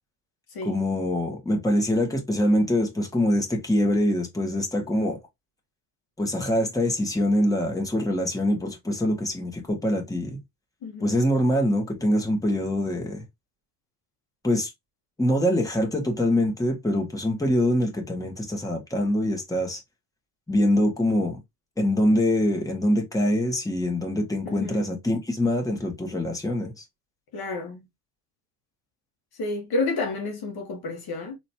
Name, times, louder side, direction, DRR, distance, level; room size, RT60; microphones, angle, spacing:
voice 1, 0.6-5.2 6.2-10.4 11.0-13.2 14.4-14.7 15.2-19.8 20.5-21.4 21.8-26.8, left 1 dB, 5° left, 1.7 m, -24 dB
voice 2, 24.4-24.9 27.3-27.8 29.4-31.4, left 3 dB, 50° left, 1.5 m, -30 dB
4.0 x 3.0 x 2.9 m
hypercardioid pair, 70°, 47 cm